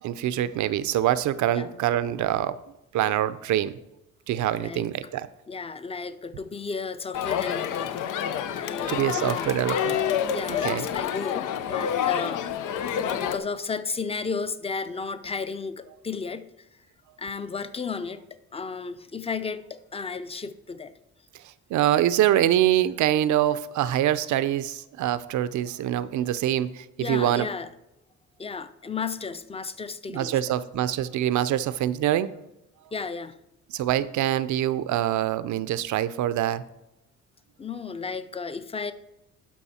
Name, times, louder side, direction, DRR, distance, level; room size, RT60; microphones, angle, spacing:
voice 1, 0.0-2.6 2.9-3.8 4.3-5.3 8.9-10.4 10.6-10.9 21.7-27.5 30.1-32.4 33.7-36.6, right 12 dB, 75° right, 15 dB, 0.6 m, -25 dB
voice 2, 5.5-8.0 8.5-9.8 10.3-12.7 13.0-16.5 17.2-18.2 18.5-20.9 27.0-27.7 28.4-30.4 32.9-33.4 37.6-38.9, left 5 dB, 20° left, 13 dB, 0.6 m, -34 dB
Crowd, 7.1-13.4, left 9 dB, 85° left, 0.7 m, -28 dB
12.0 x 5.4 x 4.3 m, 0.91 s
cardioid pair, 90°, 30 cm